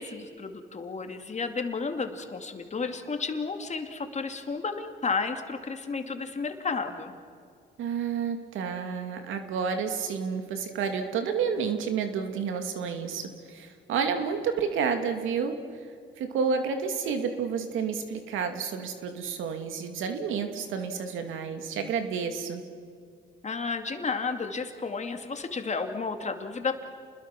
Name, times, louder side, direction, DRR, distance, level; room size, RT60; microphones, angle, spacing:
voice 1, 0.0-7.2 23.4-26.8, left 4 dB, 35° left, 6 dB, 2.5 m, -32 dB
voice 2, 7.8-15.9 16.2-22.6, right 6 dB, 85° right, 6 dB, 2.5 m, -30 dB
30.0 x 21.5 x 6.1 m, 2.2 s
cardioid pair, 90°, 20 cm